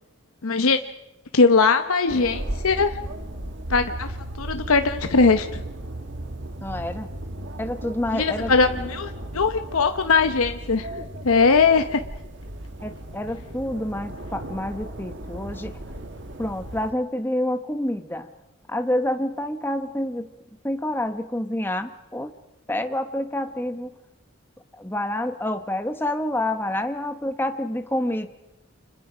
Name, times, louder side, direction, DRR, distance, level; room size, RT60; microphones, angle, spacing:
voice 1, 0.4-0.8 1.3-3.0 3.7-4.1 4.4-5.6 8.1-10.9 11.2-12.0, left 4 dB, 80° left, 7 dB, 0.9 m, -20 dB
sound 1, 2.1-16.9, right 1 dB, 55° right, 1.6 m, -35 dB
voice 2, 6.6-7.1 7.6-8.5 12.8-15.7 16.4-18.3 18.7-20.3 20.6-22.4 22.7-23.9 24.7-28.3, left 1 dB, 10° left, 7 dB, 1.0 m, -28 dB
29.5 x 26.0 x 5.1 m, 0.89 s
head